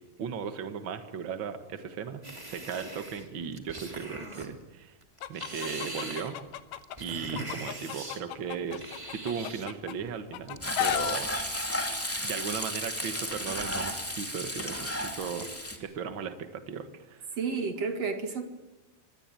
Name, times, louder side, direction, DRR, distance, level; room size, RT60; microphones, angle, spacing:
voice 1, 0.2-4.9 5.3-6.4 7.0-11.6 12.2-15.5 15.8-17.3, right 7 dB, 85° right, 8 dB, 1.0 m, -37 dB
sound 1, 2.2-4.5 5.0-8.2 8.7-9.7 10.1-10.7, right 1 dB, 10° right, 1.5 m, -41 dB
Chicken rooster, 5.2-7.0 7.4-9.9 10.3-11.2, left 12 dB, 75° left, 2.9 m, -33 dB
Frying (food), 10.6-15.8, equal, 5° left, 2.1 m, -33 dB
voice 2, 17.4-18.5, right 4 dB, 50° right, 6 dB, 2.3 m, -31 dB
25.0 x 22.0 x 9.1 m, 1.1 s
omnidirectional pair, 4.8 m